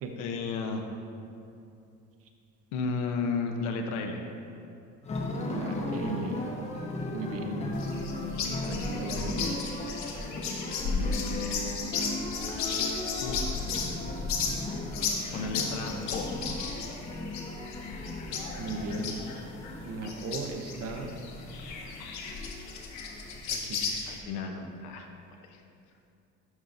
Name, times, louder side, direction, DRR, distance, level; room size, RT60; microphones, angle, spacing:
voice 1, 0.2-0.8 2.7-4.2 8.4-8.7 10.8-11.7 12.6-12.7 13.2-13.5 15.3-16.3 24.1-25.1 25.4-25.6, left 4 dB, 90° left, 3 dB, 0.9 m, -34 dB
sound 1, 5.0-23.4, left 2 dB, 20° left, 0.8 m, -37 dB
voice 2, 5.5-6.5 7.1-7.7 8.7-9.7 18.6-19.2 19.8-21.1 23.5-23.8, right 3 dB, 50° right, 4 dB, 0.8 m, -36 dB
sound 2, 7.7-24.2, left 4 dB, 65° left, 1.0 m, -35 dB
11.0 x 5.5 x 2.6 m, 2.6 s
cardioid pair, 135°, 31 cm